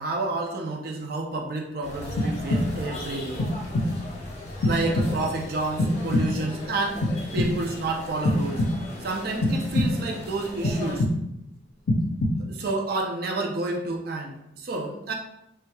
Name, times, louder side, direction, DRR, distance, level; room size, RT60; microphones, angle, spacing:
voice 1, 0.0-3.4 4.6-7.0 7.3-8.6 9.0-11.1 12.4-15.1, right 2 dB, 50° right, 1 dB, 0.5 m, -29 dB
sound 1, 1.8-11.0, left 1 dB, 35° left, 0.7 m, -38 dB
sound 2, 2.2-3.0 3.4-4.1 4.6-5.4 5.8-6.6 7.0-7.8 8.2-9.0 9.4-10.2 10.6-11.5 11.9-12.7, left 1 dB, 80° left, 0.5 m, -26 dB
3.3 x 3.0 x 2.2 m, 0.80 s
head